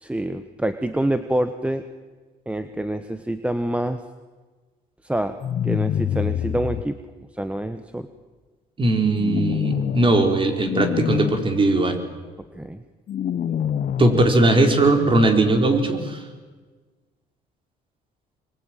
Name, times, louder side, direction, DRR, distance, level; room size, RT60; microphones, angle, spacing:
voice 1, 0.0-1.8 2.5-4.0 5.0-5.4 5.6-7.0 7.3-8.1 12.5-12.8, right 1 dB, 5° right, 9 dB, 1.2 m, -26 dB
sound 1, 5.4-6.8 9.2-10.3 10.6-11.3 13.1-14.3, left 9 dB, 50° left, 0.9 m, -25 dB
voice 2, 8.8-12.0 14.0-16.2, right 2 dB, 30° right, 5 dB, 4.4 m, -19 dB
25.5 x 23.0 x 9.2 m, 1.4 s
cardioid pair, 110°, 17 cm